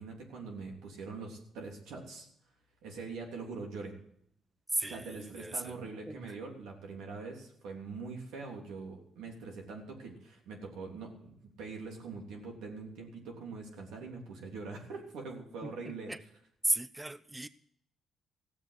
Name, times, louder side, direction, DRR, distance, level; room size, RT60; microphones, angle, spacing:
voice 1, 0.0-2.3 2.8-3.9 4.9-16.4, right 4 dB, 90° right, 1 dB, 3.2 m, -43 dB
voice 2, 16.7-17.5, right 2 dB, 15° right, 15 dB, 0.5 m, -33 dB
15.5 x 7.7 x 8.2 m, 0.70 s
cardioid pair, 90°, 0 cm